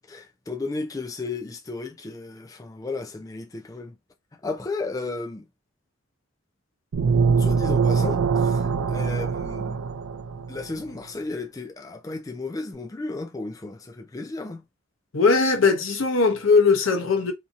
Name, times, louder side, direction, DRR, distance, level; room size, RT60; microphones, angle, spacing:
voice 1, 0.1-4.0 4.4-5.5 7.4-9.9 10.5-14.6, left 3 dB, 15° left, 0.3 m, -34 dB
sound 1, 6.9-10.6, right 5 dB, 80° right, 0.3 m, -23 dB
voice 2, 15.1-17.3, left 4 dB, 80° left, 0.7 m, -19 dB
2.8 x 2.6 x 2.5 m
head